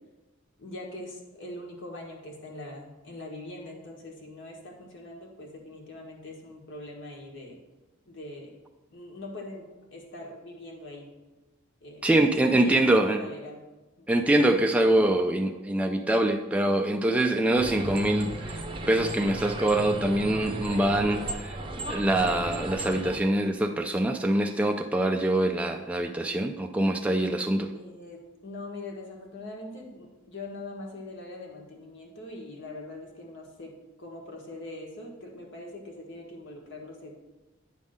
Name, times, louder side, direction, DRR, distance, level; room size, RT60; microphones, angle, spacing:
voice 1, 0.6-7.6 8.1-8.5 8.9-9.7 9.9-11.1 11.8-13.6 14.0-14.1 27.7-33.7 34.0-37.1, left 2 dB, 65° left, 0 dB, 1.6 m, -42 dB
voice 2, 12.0-13.2 14.1-18.6 18.9-21.6 21.9-27.7, right 1 dB, 5° right, 3 dB, 0.3 m, -24 dB
sound 1, 17.6-23.2, right 1 dB, 25° right, 0.7 m, -35 dB
9.0 x 3.6 x 6.5 m, 1.1 s
head